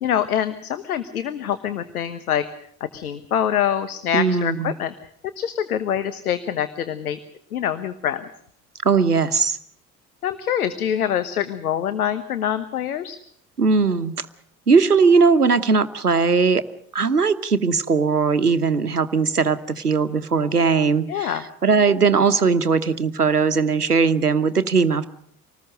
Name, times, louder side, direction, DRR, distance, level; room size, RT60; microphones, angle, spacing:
voice 1, 0.0-2.4 2.8-4.9 5.4-7.2 7.5-8.2 10.2-13.2 21.1-21.4, left 10 dB, 75° left, 12 dB, 1.2 m, -25 dB
voice 2, 4.1-4.7 8.8-9.6 13.6-14.2 14.7-16.6 16.9-25.1, right 5 dB, 90° right, 13 dB, 1.1 m, -19 dB
26.0 x 19.5 x 6.5 m, 0.65 s
figure-of-eight pair, 65°, 45 cm